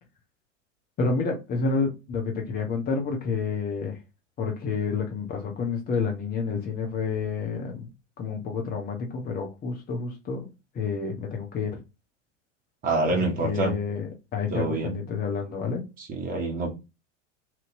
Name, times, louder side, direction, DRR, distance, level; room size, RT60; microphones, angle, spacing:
voice 1, 1.0-4.0 4.4-7.9 8.2-11.8 13.1-15.8, left 5 dB, 25° left, 0.9 m, -29 dB
voice 2, 12.8-13.7 14.5-15.0 16.0-16.7, right 3 dB, 25° right, 1.1 m, -26 dB
2.9 x 2.7 x 2.6 m
figure-of-eight pair, 85°, 36 cm